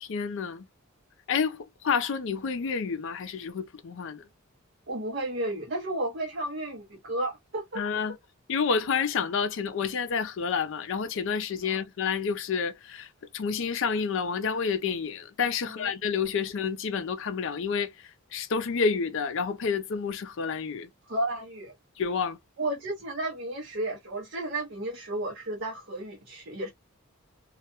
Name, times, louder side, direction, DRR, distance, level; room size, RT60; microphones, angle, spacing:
voice 1, 0.0-0.7 1.3-4.2 7.8-8.2 8.5-13.1 13.3-17.9 18.3-20.9 22.0-22.4, left 6 dB, 65° left, 0.4 m, -29 dB
voice 2, 4.9-7.8 11.6-11.8 15.6-15.9 21.1-21.7 22.6-26.7, right 1 dB, 55° right, 0.7 m, -33 dB
2.2 x 2.1 x 2.8 m
head